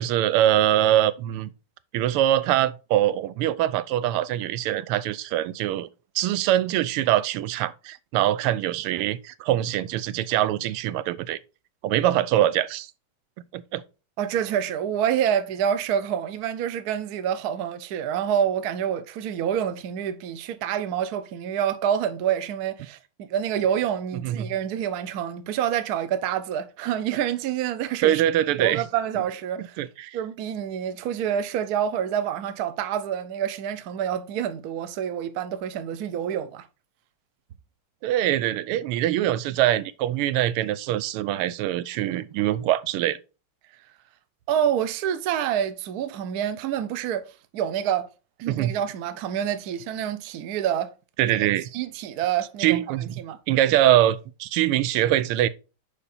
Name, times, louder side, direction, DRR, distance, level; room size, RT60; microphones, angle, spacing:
voice 1, 0.0-1.5 1.9-5.9 6.1-11.4 11.8-12.9 13.5-13.8 24.2-24.5 28.0-28.8 29.6-30.2 38.0-43.2 48.5-48.7 51.2-51.7 52.6-53.1 53.5-55.5, right 12 dB, 90° right, 1.5 m, -23 dB
voice 2, 14.2-28.2 28.6-29.8 30.1-36.7 44.5-48.1 48.4-50.9 51.3-51.5 51.7-52.8 53.2-53.4 53.8-53.9, right 9 dB, 65° right, 1.0 m, -27 dB
6.7 x 5.0 x 4.1 m
omnidirectional pair, 2.4 m